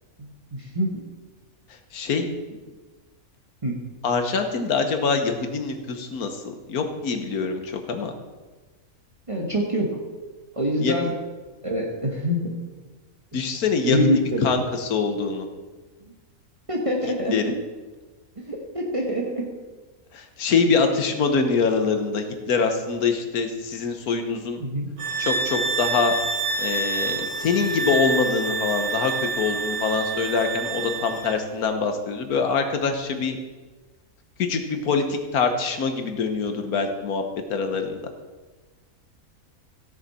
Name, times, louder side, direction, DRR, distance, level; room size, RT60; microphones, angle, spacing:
voice 1, 0.2-1.0 3.6-3.8 9.3-10.0 10.6-11.1 11.6-12.6 13.8-14.4 16.7-17.4 18.4-19.5 24.6-24.9, equal, 25° right, -1 dB, 1.3 m, -25 dB
voice 2, 1.9-2.3 4.0-8.1 10.8-10.9 13.3-14.1 14.4-15.5 17.3-17.4 20.1-24.6 25.2-26.1 26.6-33.4 34.4-37.2 37.5-38.0, left 5 dB, 85° left, 6 dB, 1.6 m, -24 dB
sound 1, 25.0-31.4, right 3 dB, 85° right, 1.7 m, -27 dB
16.0 x 6.7 x 4.3 m, 1.3 s
omnidirectional pair, 1.5 m